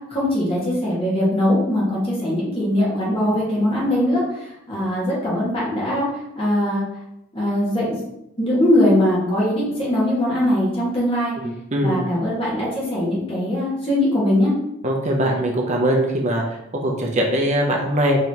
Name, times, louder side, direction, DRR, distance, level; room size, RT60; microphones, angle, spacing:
voice 1, 0.1-6.1 6.3-6.8 7.3-8.0 8.4-11.3 11.8-14.5, left 1 dB, 30° left, -6 dB, 1.6 m, -21 dB
voice 2, 11.7-12.0 14.8-18.2, right 1 dB, 35° right, 0 dB, 0.6 m, -21 dB
5.4 x 3.2 x 2.8 m, 0.83 s
head